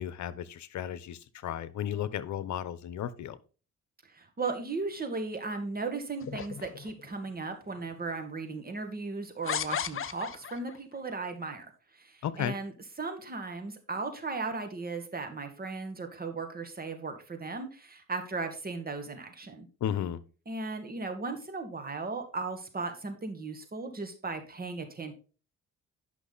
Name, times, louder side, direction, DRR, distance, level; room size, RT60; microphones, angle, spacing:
voice 1, 0.0-3.4 12.2-12.6 19.8-20.2, left 10 dB, 70° left, 17 dB, 1.0 m, -34 dB
voice 2, 4.1-11.7 11.9-19.7 20.5-25.1, right 3 dB, 30° right, 6 dB, 2.0 m, -36 dB
sound 1, 6.2-7.1 7.9-8.0 9.4-10.8, left 8 dB, 45° left, 0.8 m, -35 dB
10.5 x 6.0 x 4.0 m, 0.36 s
cardioid pair, 90°, 30 cm